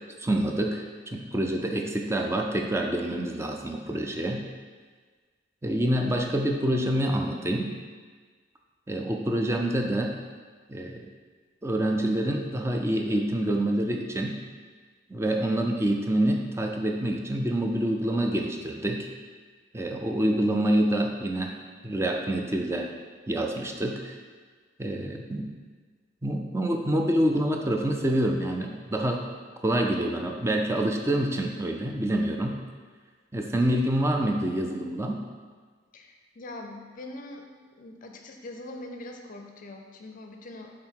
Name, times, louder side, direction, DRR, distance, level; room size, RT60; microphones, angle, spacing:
voice 1, 0.2-0.8 1.1-4.4 5.6-7.7 8.9-10.2 10.7-11.1 11.6-14.4 15.1-19.1 19.7-21.5 21.8-22.9 23.3-24.2 24.8-25.5 26.2-29.3 29.6-32.6 33.3-35.2, right 1 dB, 15° right, 2 dB, 0.5 m, -27 dB
voice 2, 35.9-37.5 37.8-40.7, left 2 dB, 45° left, 3 dB, 0.5 m, -42 dB
5.6 x 3.7 x 4.5 m, 1.5 s
head